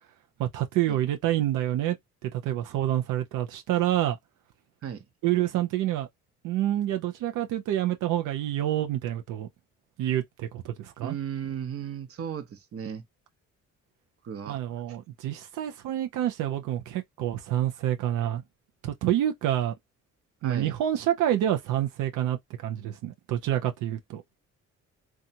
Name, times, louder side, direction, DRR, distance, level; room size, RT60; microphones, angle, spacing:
voice 1, 0.4-2.0 2.2-4.2 5.2-6.1 6.4-9.5 10.0-11.2 14.5-18.4 18.8-19.7 20.4-24.2, right 12 dB, 90° right, 0.5 m, -28 dB
voice 2, 11.0-13.0 14.2-14.6 20.4-20.7, right 8 dB, 50° right, 0.7 m, -35 dB
2.7 x 2.3 x 2.6 m
cardioid pair, 90°, 30 cm